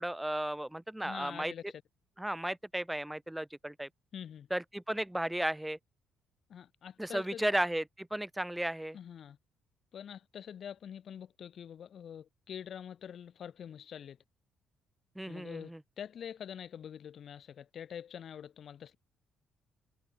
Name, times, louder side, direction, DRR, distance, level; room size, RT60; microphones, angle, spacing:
voice 1, 0.0-1.5 2.2-3.9 4.5-5.8 7.0-9.0 15.1-15.8, right 1 dB, 5° right, 1.6 m, -34 dB
voice 2, 1.0-1.8 4.1-4.5 6.5-7.4 8.9-9.4 9.9-14.2 15.3-19.0, left 8 dB, 50° left, 1.6 m, -45 dB
cardioid pair, 120°, 0 cm